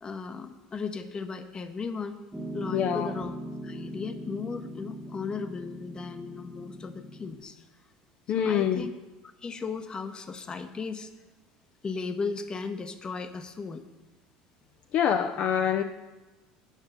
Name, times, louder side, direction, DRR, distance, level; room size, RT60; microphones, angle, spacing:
voice 1, 0.0-2.2 2.5-3.4 3.6-7.6 8.3-8.9 9.4-11.1 11.8-13.8, left 5 dB, 30° left, 8 dB, 0.8 m, -36 dB
Piano, 2.3-7.4, equal, 5° right, 1.1 m, -40 dB
voice 2, 2.7-3.1 8.3-8.9 14.9-15.8, left 8 dB, 55° left, 6 dB, 0.5 m, -25 dB
7.4 x 5.3 x 6.7 m, 1.2 s
supercardioid pair, 90°, 3 cm